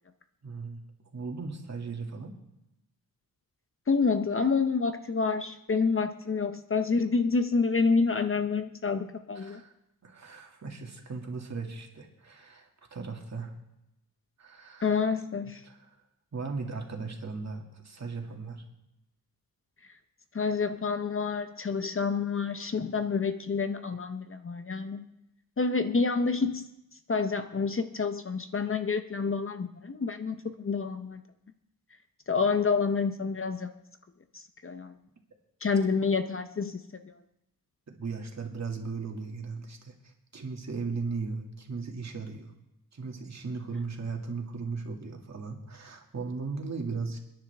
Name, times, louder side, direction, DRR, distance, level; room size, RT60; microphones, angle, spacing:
voice 1, 0.4-0.8 1.1-2.4 9.4-9.7 10.0-13.5 14.4-14.9 15.6-15.8 16.3-18.6 37.9-42.5 42.9-47.2, right 4 dB, 45° right, 2 dB, 2.3 m, -37 dB
voice 2, 3.9-9.6 14.8-15.6 20.3-25.1 25.6-26.7 27.1-31.2 32.3-33.7 34.3-34.9 35.6-37.1, left 4 dB, 35° left, 9 dB, 0.7 m, -28 dB
29.5 x 10.5 x 3.5 m, 0.88 s
wide cardioid pair, 115°, 37 cm